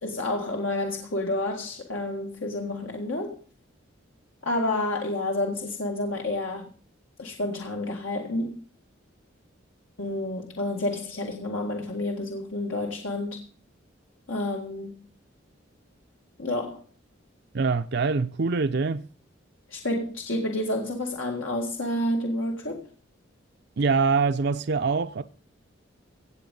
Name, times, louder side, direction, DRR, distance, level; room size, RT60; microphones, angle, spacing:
voice 1, 0.0-3.4 4.4-6.7 7.2-8.6 10.0-13.4 14.3-15.1 16.4-16.8 19.7-22.9, left 1 dB, 85° left, 1.9 m, -29 dB
voice 2, 17.5-19.1 23.8-25.2, right 4 dB, 55° right, 0.5 m, -24 dB
17.0 x 7.8 x 5.4 m
head